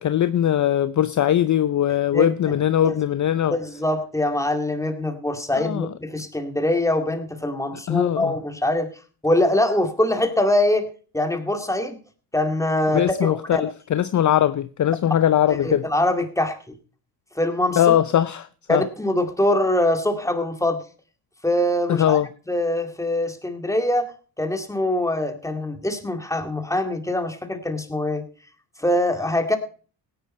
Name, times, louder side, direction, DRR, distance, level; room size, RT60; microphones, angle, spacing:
voice 1, 0.0-3.6 5.5-5.9 7.9-8.3 12.9-15.9 17.8-18.8 21.9-22.3, left 11 dB, 40° left, 0.6 m, -20 dB
voice 2, 2.1-2.6 2.8-2.9 3.5-8.9 9.2-10.9 11.1-12.0 12.3-13.6 15.5-16.6 17.4-18.0 18.7-20.8 21.4-22.2 22.5-24.1 24.4-28.2 28.8-29.6, left 1 dB, 5° left, 2.2 m, -23 dB
17.0 x 9.7 x 4.3 m
supercardioid pair, 65°, 44 cm